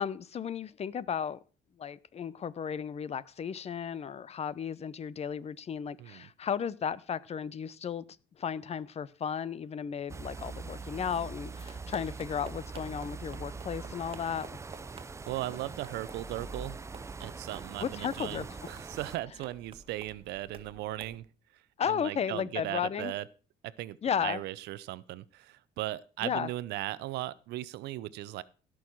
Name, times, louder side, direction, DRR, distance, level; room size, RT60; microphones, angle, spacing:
voice 1, 0.0-1.4 1.8-8.0 8.4-14.5 17.8-18.5 21.8-23.1 24.0-24.4 26.2-26.5, left 7 dB, 40° left, 0.7 m, -34 dB
sound 1, 10.1-19.2, right 4 dB, 15° right, 0.5 m, -43 dB
sound 2, 11.5-21.2, right 4 dB, 35° right, 1.8 m, -51 dB
voice 2, 15.3-16.8 17.2-21.3 21.9-23.2 23.6-28.4, right 15 dB, 80° right, 0.7 m, -37 dB
17.0 x 6.4 x 4.6 m
cardioid pair, 110°, 17 cm